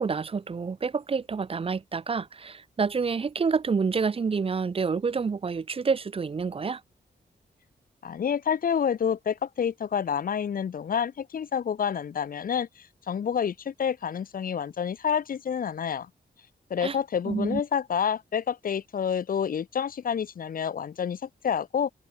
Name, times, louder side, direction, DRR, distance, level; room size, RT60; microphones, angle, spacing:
voice 1, 0.0-6.8 16.8-17.0 17.2-17.6, right 5 dB, 35° right, 0.6 m, -28 dB
voice 2, 8.0-16.1 16.7-21.9, left 7 dB, 55° left, 0.7 m, -28 dB
wide cardioid pair, 130°, 18 cm